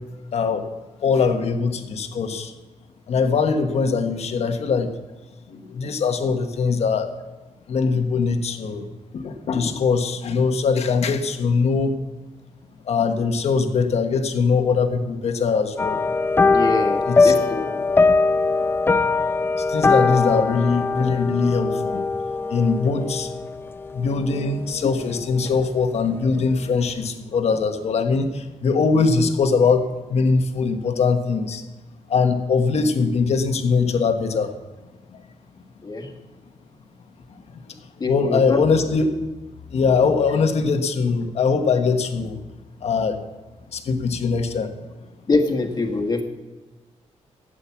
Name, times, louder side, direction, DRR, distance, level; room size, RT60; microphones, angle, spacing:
voice 1, 0.3-0.7 1.0-2.5 3.1-4.9 5.5-7.1 7.7-8.9 9.1-11.9 12.8-16.0 17.1-17.3 19.6-22.0 22.5-23.3 23.9-31.6 32.1-34.5 35.1-35.2 37.7-37.8 38.1-39.2 39.7-42.4 42.8-43.2 43.7-44.7, left 5 dB, 60° left, 6 dB, 1.3 m, -21 dB
sound 1, 15.8-25.4 25.6-26.0 26.4-26.5, left 4 dB, 20° left, 0.4 m, -21 dB
voice 2, 16.5-17.9 35.8-36.1 38.0-38.8 45.3-46.2, left 3 dB, 35° left, 3 dB, 1.7 m, -24 dB
13.0 x 8.8 x 7.1 m, 1.2 s
wide cardioid pair, 130°, 12 cm